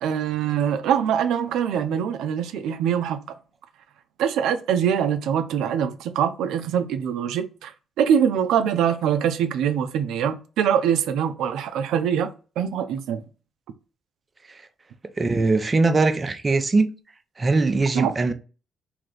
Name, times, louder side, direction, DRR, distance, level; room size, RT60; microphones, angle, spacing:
voice 1, 0.0-3.2 4.2-7.7 8.0-12.3 12.6-13.2 17.9-18.1, right 8 dB, 85° right, 0.5 m, -23 dB
voice 2, 15.2-16.9 17.4-18.3, right 3 dB, 30° right, 0.6 m, -21 dB
3.3 x 2.8 x 3.9 m
cardioid pair, 90°, 0 cm